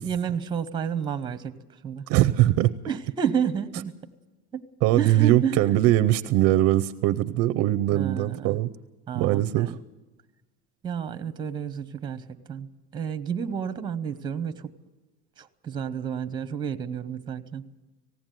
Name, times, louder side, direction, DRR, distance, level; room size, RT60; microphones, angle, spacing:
voice 1, 0.0-1.6 1.8-2.1 2.9-3.9 4.5-4.7 5.0-5.7 7.9-8.6 9.1-9.8 10.8-14.7 15.4-17.7, right 7 dB, 15° right, 10 dB, 0.8 m, -30 dB
voice 2, 2.1-2.7 4.8-8.7 9.1-9.8, right 14 dB, 45° right, 12 dB, 0.6 m, -21 dB
19.0 x 16.0 x 9.1 m, 1.1 s
cardioid pair, 165°, 34 cm